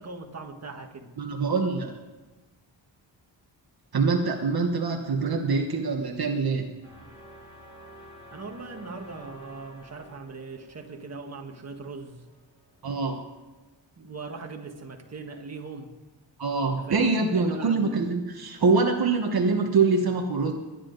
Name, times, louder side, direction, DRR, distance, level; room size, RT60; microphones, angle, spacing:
voice 1, 0.0-1.1 8.3-12.2 14.0-15.9 16.8-18.0, right 3 dB, 35° right, 3 dB, 1.6 m, -40 dB
voice 2, 1.2-2.0 3.9-6.7 12.8-13.2 16.4-20.5, right 4 dB, 55° right, 2 dB, 1.3 m, -24 dB
sound 1, 6.8-12.8, equal, 10° left, 6.0 m, -50 dB
22.0 x 10.0 x 4.0 m, 1.2 s
wide cardioid pair, 155°, 45 cm